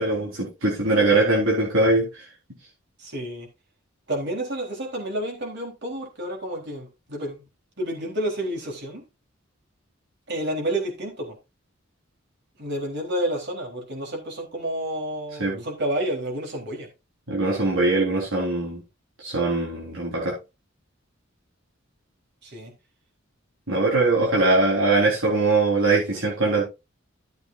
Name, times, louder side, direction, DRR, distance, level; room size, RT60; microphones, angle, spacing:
voice 1, 0.0-2.2 15.4-15.6 17.3-18.8 19.2-20.3 23.7-26.6, right 2 dB, 85° right, -4 dB, 4.1 m, -21 dB
voice 2, 3.0-3.5 4.1-7.4 7.8-9.0 10.3-11.3 12.6-16.9 22.4-22.7, right 1 dB, 60° right, 1 dB, 3.8 m, -30 dB
13.5 x 7.9 x 2.6 m, 0.25 s
head